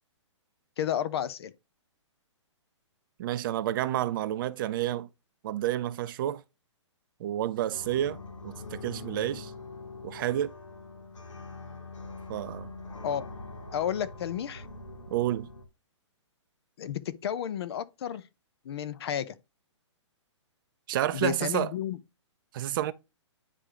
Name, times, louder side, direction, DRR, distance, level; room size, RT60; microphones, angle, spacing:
voice 1, 0.8-1.5 13.0-13.3 13.7-14.7 16.8-18.2 18.6-19.3 21.1-22.0, left 9 dB, 55° left, 0.8 m, -31 dB
voice 2, 3.2-5.1 5.4-6.4 7.2-9.5 10.0-10.5 12.3-12.7 15.1-15.5 20.9-21.7 22.5-22.9, right 13 dB, 45° right, 0.6 m, -30 dB
sound 1, 7.7-15.6, left 3 dB, 80° left, 2.3 m, -43 dB
9.8 x 3.3 x 3.7 m
hypercardioid pair, 135°, 16 cm